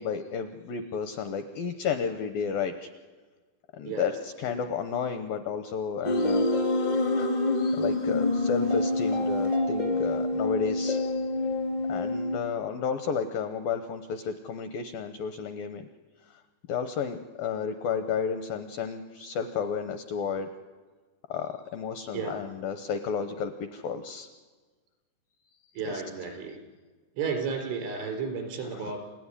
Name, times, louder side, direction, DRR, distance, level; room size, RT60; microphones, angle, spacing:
voice 1, 0.0-2.9 3.7-6.7 7.2-7.3 7.5-11.3 11.9-15.9 16.3-16.4 16.7-20.5 21.3-24.3 25.9-26.0 28.7-28.9, left 6 dB, 80° left, 8 dB, 2.1 m, -32 dB
sound 1, 6.0-12.4, left 2 dB, 45° left, 0.5 m, -26 dB
voice 2, 25.8-26.6 27.2-29.0, right 5 dB, 85° right, 3 dB, 6.6 m, -33 dB
29.5 x 16.0 x 9.9 m, 1.4 s
omnidirectional pair, 5.4 m